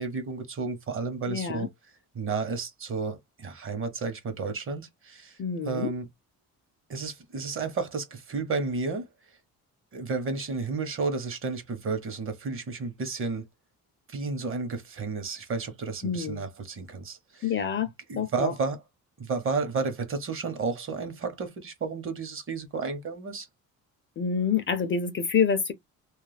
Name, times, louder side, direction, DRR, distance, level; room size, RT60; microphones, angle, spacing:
voice 1, 0.0-1.7 2.1-6.1 6.9-9.1 9.9-13.4 14.1-17.5 18.1-18.8 19.2-23.5, right 4 dB, 40° right, 0.9 m, -32 dB
voice 2, 1.3-1.7 5.4-5.9 16.0-16.5 17.4-17.9 18.2-18.5 24.2-25.7, left 6 dB, 35° left, 0.4 m, -27 dB
2.4 x 2.0 x 3.2 m
cardioid pair, 115°, 34 cm